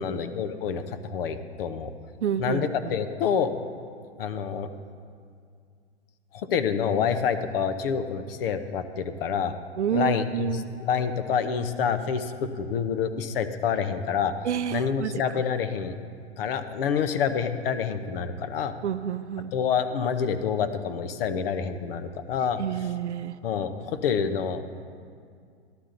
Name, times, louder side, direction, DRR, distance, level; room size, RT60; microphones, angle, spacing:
voice 1, 0.0-1.9 2.4-3.5 4.2-4.7 6.3-9.5 9.9-14.3 14.7-16.0 16.4-18.7 19.5-22.6 23.4-24.6, left 7 dB, 55° left, 10 dB, 0.9 m, -27 dB
voice 2, 2.2-2.9 9.8-10.6 14.4-15.4 18.8-19.5 22.6-23.4, right 9 dB, 85° right, 13 dB, 0.6 m, -29 dB
13.0 x 11.5 x 3.9 m, 2.2 s
hypercardioid pair, 125°, 33 cm